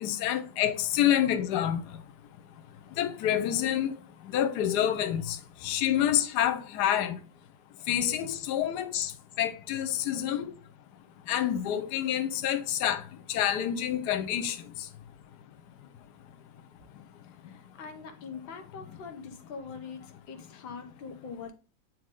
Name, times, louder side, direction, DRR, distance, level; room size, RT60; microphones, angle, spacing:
voice 1, 0.0-1.8 3.0-3.9 4.3-5.4 5.6-7.2 7.9-9.1 9.4-10.5 11.3-13.0 13.3-14.6, left 10 dB, 70° left, 1.1 m, -27 dB
voice 2, 17.4-21.5, left 5 dB, 85° left, 1.7 m, -43 dB
8.5 x 3.1 x 3.7 m
omnidirectional pair, 2.0 m